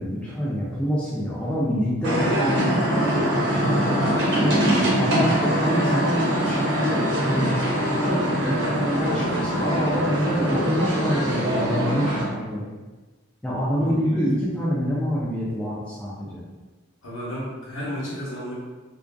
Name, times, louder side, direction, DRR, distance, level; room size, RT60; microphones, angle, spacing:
voice 1, 0.0-4.0 4.4-4.6 5.0-7.5 8.0-12.7 13.4-16.4, equal, 5° left, -8 dB, 0.3 m, -26 dB
sound 1, 2.0-12.2, equal, 55° right, 0.8 m, -23 dB
voice 2, 4.1-5.0 9.2-9.3 13.8-14.2 17.0-18.5, equal, 70° left, -7 dB, 1.0 m, -33 dB
2.4 x 2.4 x 2.2 m, 1.2 s
head